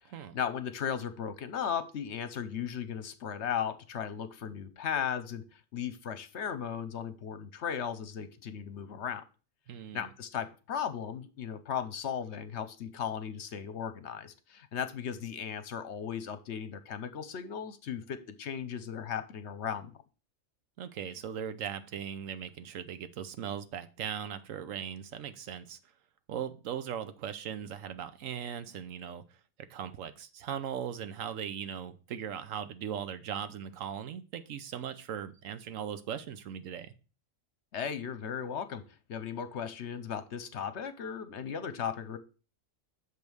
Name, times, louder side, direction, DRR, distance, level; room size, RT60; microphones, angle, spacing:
voice 1, 0.3-9.2 9.9-19.9 37.7-38.8 39.1-42.2, left 8 dB, 65° left, 1.0 m, -36 dB
voice 2, 9.7-10.1 20.8-25.8 26.3-29.4 29.7-36.9, right 8 dB, 80° right, 1.1 m, -39 dB
6.6 x 5.3 x 6.2 m
omnidirectional pair, 1.3 m